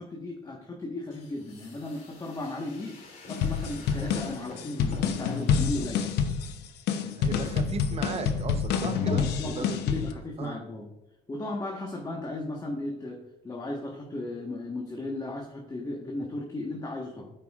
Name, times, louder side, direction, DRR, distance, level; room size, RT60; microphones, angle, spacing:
voice 1, 0.0-3.0 3.3-6.1 7.0-7.2 9.0-10.9 11.3-17.3, left 2 dB, 20° left, 0 dB, 1.3 m, -36 dB
sound 1, 1.1-5.9, left 2 dB, 60° left, 2.7 m, -46 dB
sound 2, 3.3-10.1, left 7 dB, 80° left, 0.8 m, -28 dB
voice 2, 7.1-9.8 10.4-10.6, right 5 dB, 35° right, 7 dB, 0.9 m, -36 dB
13.0 x 5.4 x 2.4 m, 0.87 s
cardioid pair, 110°, 17 cm